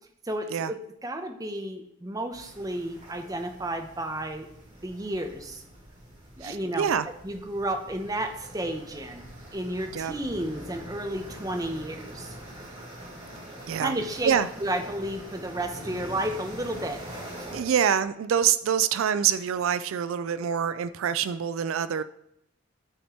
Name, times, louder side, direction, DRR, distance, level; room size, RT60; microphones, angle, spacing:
voice 1, 0.2-0.8 1.0-4.5 4.8-5.6 6.4-6.9 7.2-12.3 13.8-17.0, right 1 dB, 20° right, 0.8 m, -32 dB
sound 1, 2.3-17.6, right 1 dB, 35° right, 3.4 m, -44 dB
voice 2, 6.4-7.1 9.9-10.1 13.7-13.9 14.2-14.5 17.5-22.0, right 8 dB, 80° right, 0.4 m, -25 dB
12.5 x 4.3 x 4.3 m
head